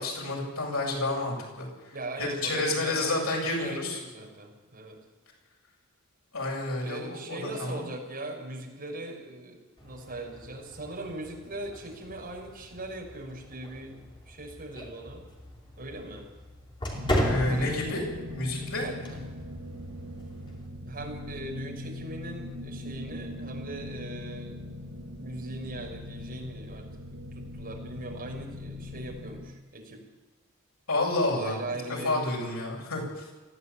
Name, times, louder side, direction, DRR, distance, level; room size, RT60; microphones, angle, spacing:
voice 1, 0.0-4.0 6.3-7.9 17.2-18.0 18.3-18.9 30.9-31.6 31.9-33.2, left 2 dB, 85° left, -1 dB, 7.9 m, -30 dB
voice 2, 1.9-5.0 6.8-15.3 15.8-16.3 17.5-18.2 18.8-19.2 20.9-24.7 25.2-26.9 27.3-30.0 31.4-32.4, right 2 dB, 45° right, 0 dB, 5.9 m, -40 dB
sound 1, 9.8-20.7, equal, 20° left, 3.2 m, -36 dB
sound 2, 17.0-29.5, left 1 dB, 65° right, 6.9 m, -40 dB
19.0 x 15.5 x 8.8 m, 1.3 s
head